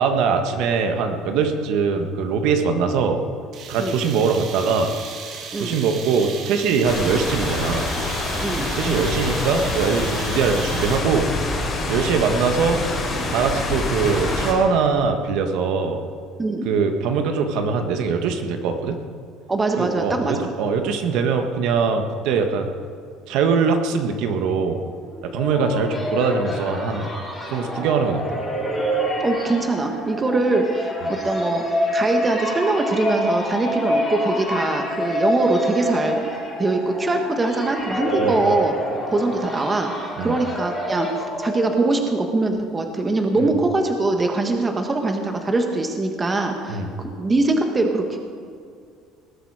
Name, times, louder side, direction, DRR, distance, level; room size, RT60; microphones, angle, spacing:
voice 1, 0.0-3.2 3.7-4.9 5.6-7.9 8.7-11.3 11.9-12.8 13.3-16.0 16.6-19.0 19.8-22.7 23.3-24.8 25.2-27.1 27.5-28.4 38.2-38.4 40.2-40.4 43.4-43.5 46.7-46.9, right 5 dB, 65° right, 6 dB, 1.5 m, -22 dB
sound 1, 3.5-11.2, right 5 dB, 45° right, 1.8 m, -36 dB
sound 2, 6.8-14.5, left 2 dB, 20° left, 3.9 m, -26 dB
voice 2, 19.5-20.5 29.2-31.6 31.9-36.3 36.6-38.7 39.1-48.2, right 2 dB, 15° right, 4 dB, 1.3 m, -22 dB
sound 3, 25.1-42.1, equal, 5° left, 4.4 m, -27 dB
20.0 x 12.0 x 4.9 m, 2.3 s
cardioid pair, 170°, 0 cm